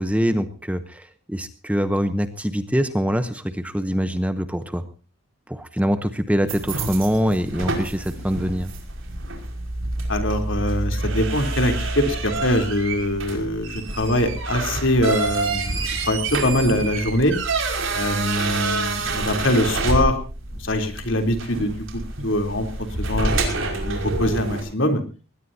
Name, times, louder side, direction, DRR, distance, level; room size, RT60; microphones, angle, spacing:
voice 1, 0.0-4.8 5.5-8.7, equal, 5° right, 10 dB, 0.8 m, -24 dB
sound 1, 6.5-24.6, right 2 dB, 60° right, 5.4 m, -27 dB
voice 2, 10.1-17.3 17.9-20.2 20.6-25.0, left 1 dB, 60° left, 6 dB, 3.6 m, -23 dB
22.0 x 19.5 x 2.8 m, 0.36 s
head